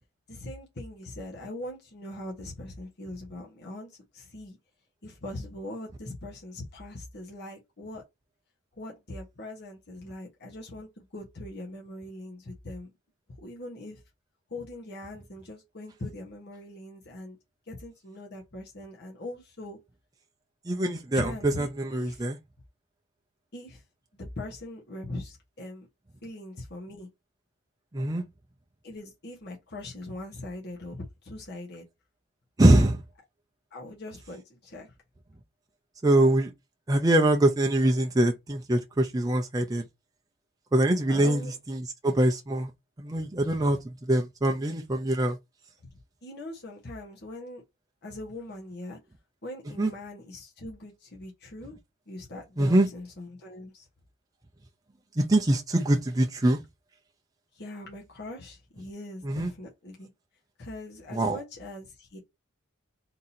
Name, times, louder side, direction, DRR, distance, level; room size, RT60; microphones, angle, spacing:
voice 1, 0.3-4.6 5.0-8.0 8.8-12.9 13.4-14.0 14.5-17.4 17.7-19.8 21.1-22.3 23.5-23.8 24.2-25.9 26.2-27.1 28.8-31.8 33.7-34.9 41.1-41.5 46.2-47.6 48.0-49.0 49.4-51.7 52.1-53.9 57.5-60.1 60.6-62.2, left 1 dB, 50° left, 1.3 m, -41 dB
voice 2, 20.7-22.4 27.9-28.2 32.6-33.0 36.0-36.5 36.9-39.8 40.7-42.7 43.0-45.4 49.8-49.9 52.6-52.9 55.2-56.6 59.2-59.5 61.1-61.4, right 1 dB, 15° right, 0.5 m, -23 dB
3.7 x 2.8 x 4.1 m
head